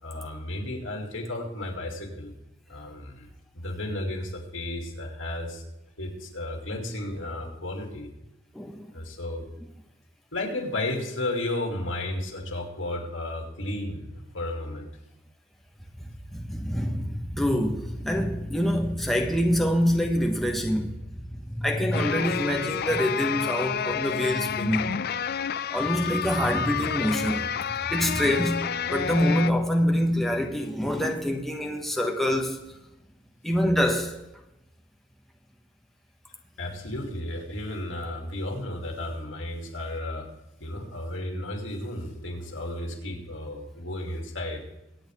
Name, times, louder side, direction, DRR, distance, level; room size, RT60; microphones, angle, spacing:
voice 1, 0.0-2.3 2.7-3.3 3.5-5.6 6.0-8.1 8.9-9.4 10.3-14.9 36.6-40.3 40.6-44.6, left 1 dB, 80° left, 2.7 m, -33 dB
voice 2, 8.5-8.9 16.0-21.0 21.3-25.0 25.7-32.6 33.4-34.2, equal, ahead, 1.2 m, -26 dB
sound 1, 21.9-29.5, left 8 dB, 55° left, 0.4 m, -30 dB
23.5 x 8.8 x 3.6 m
head